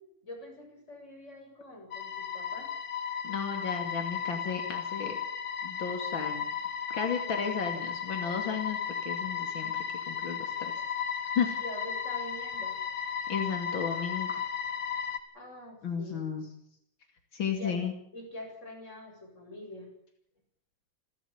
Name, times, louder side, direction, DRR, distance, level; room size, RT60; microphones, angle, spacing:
voice 1, 0.0-2.7 11.6-12.8 15.3-16.3 17.4-17.8 18.1-19.9, left 1 dB, 35° left, 1 dB, 8.2 m, -45 dB
sound 1, 1.9-15.2, left 7 dB, 70° left, 2.6 m, -35 dB
voice 2, 3.2-5.2 5.6-6.4 6.9-8.8 9.0-10.7 11.4-11.6 13.3-14.4 15.8-16.5 17.3-17.9, left 6 dB, 85° left, 4 dB, 3.3 m, -33 dB
28.0 x 13.0 x 8.8 m, 0.67 s
omnidirectional pair, 2.1 m